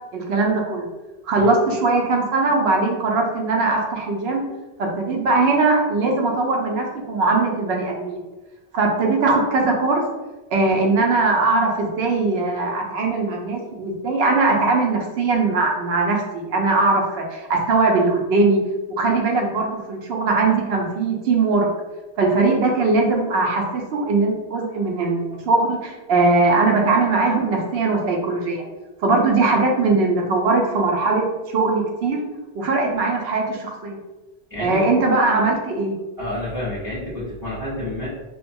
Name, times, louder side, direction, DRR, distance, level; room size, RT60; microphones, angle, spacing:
voice 1, 0.1-0.9 1.2-4.4 4.8-8.2 8.7-10.1 10.5-18.6 19.0-21.7 22.2-28.7 29.0-32.2 32.5-34.0 34.6-35.9, right 3 dB, 75° right, 0 dB, 0.8 m, -20 dB
voice 2, 34.5-34.8 36.2-38.1, left 1 dB, 20° right, -10 dB, 0.6 m, -29 dB
2.5 x 2.2 x 2.6 m, 1.1 s
omnidirectional pair, 1.1 m